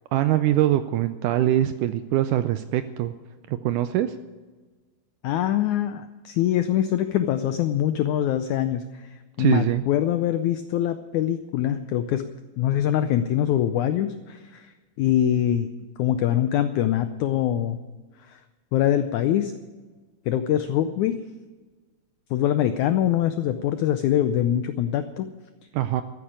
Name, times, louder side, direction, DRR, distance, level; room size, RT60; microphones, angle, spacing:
voice 1, 0.1-3.1 3.5-4.1 9.4-9.8 25.7-26.0, right 13 dB, 80° right, 11 dB, 1.8 m, -23 dB
voice 2, 5.2-12.3 12.6-14.7 15.0-15.7 16.0-17.8 18.3-18.4 18.7-19.5 20.3-21.2 22.3-25.3, left 11 dB, 85° left, 10 dB, 1.7 m, -24 dB
13.5 x 9.5 x 8.7 m, 1.3 s
omnidirectional pair, 4.1 m